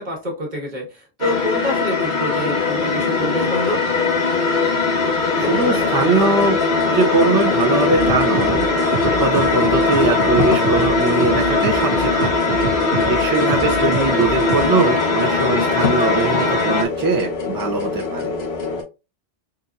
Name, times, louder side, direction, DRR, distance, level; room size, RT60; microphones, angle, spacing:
voice 1, 0.0-3.8 13.7-14.2, left 1 dB, 45° right, 0 dB, 1.4 m, -27 dB
sound 1, 1.2-16.9, left 3 dB, 55° left, 0.9 m, -20 dB
sound 2, 5.1-5.2 5.4-18.8, left 3 dB, 75° left, 1.1 m, -26 dB
voice 2, 5.4-6.6 6.9-8.7 9.0-12.4 13.1-18.3, right 3 dB, 25° right, -1 dB, 0.5 m, -21 dB
sound 3, 7.9-14.7, right 3 dB, 90° right, 1.0 m, -28 dB
4.0 x 2.7 x 2.4 m, 0.28 s
omnidirectional pair, 1.1 m